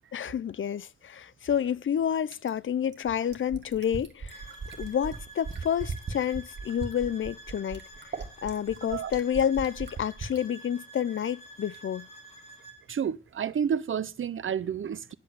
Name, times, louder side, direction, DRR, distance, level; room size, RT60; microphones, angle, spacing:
voice 1, 0.1-4.4 4.8-8.2 8.4-12.1, left 9 dB, 75° left, 0.5 m, -29 dB
Fill (with liquid), 2.3-10.4 11.7-11.8, right 4 dB, 60° right, 2.0 m, -38 dB
sound 1, 4.3-12.8, right 2 dB, 30° left, 4.7 m, -49 dB
voice 2, 12.9-15.1, right 8 dB, 75° right, 0.7 m, -30 dB
10.5 x 8.0 x 8.5 m
wide cardioid pair, 150°, 21 cm